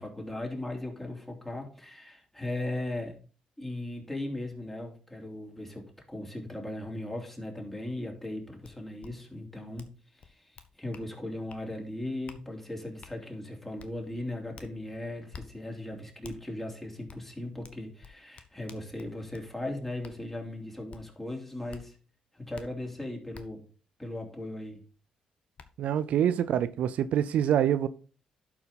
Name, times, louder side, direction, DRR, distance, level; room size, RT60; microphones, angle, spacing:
voice 1, 0.0-3.2 3.6-22.0 22.3-23.7 24.0-24.8, left 1 dB, 10° left, 3.2 m, -38 dB
sound 1, 8.6-8.7 9.0-9.1 9.8-9.9 10.2-11.1 11.5-11.6 12.3-12.4 13.0-13.1 13.8-13.9 14.5-14.7 15.3-15.5 16.2-16.4 17.1-17.2 17.6-19.5 20.0-20.2 20.9-21.0 21.7-21.8 22.5-22.7 23.3-23.4 24.9-25.0 25.6-25.7, left 6 dB, 55° left, 1.0 m, -48 dB
voice 2, 25.8-27.9, right 10 dB, 70° right, 0.5 m, -26 dB
11.5 x 4.6 x 4.0 m
supercardioid pair, 55°, 2 cm